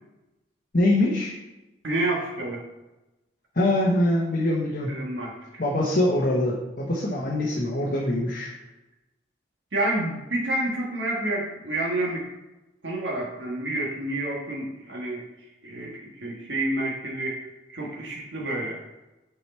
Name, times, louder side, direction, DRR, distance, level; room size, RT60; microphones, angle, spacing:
voice 1, 0.7-1.4 3.5-4.9 5.6-8.5, left 1 dB, 50° left, -4 dB, 1.0 m, -23 dB
voice 2, 1.8-2.6 4.9-5.6 9.7-12.3 12.8-15.2 15.6-17.4 17.7-18.8, right 1 dB, 75° right, -2 dB, 1.5 m, -29 dB
6.6 x 4.7 x 4.3 m, 1.0 s
head